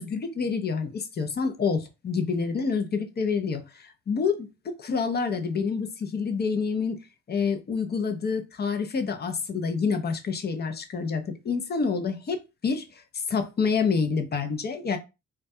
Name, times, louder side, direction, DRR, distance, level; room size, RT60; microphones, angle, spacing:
voice 1, 0.0-7.0 7.3-12.4 12.6-12.8 13.3-15.0, left 5 dB, 35° left, 0.5 m, -27 dB
2.2 x 2.1 x 2.6 m
cardioid pair, 90°, 30 cm